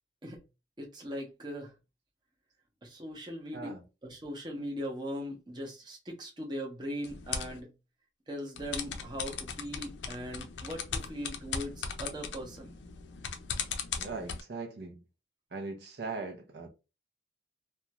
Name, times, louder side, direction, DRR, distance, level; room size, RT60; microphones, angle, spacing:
voice 1, 0.8-1.7 2.8-3.7 4.0-7.7 8.3-12.8, equal, 25° right, 0.7 m, -40 dB
voice 2, 3.5-3.8 14.0-15.0 15.5-16.7, right 3 dB, 65° right, 0.6 m, -40 dB
sound 1, 7.0-7.6 8.6-14.4, left 6 dB, 80° left, 0.4 m, -38 dB
2.4 x 2.2 x 2.8 m
head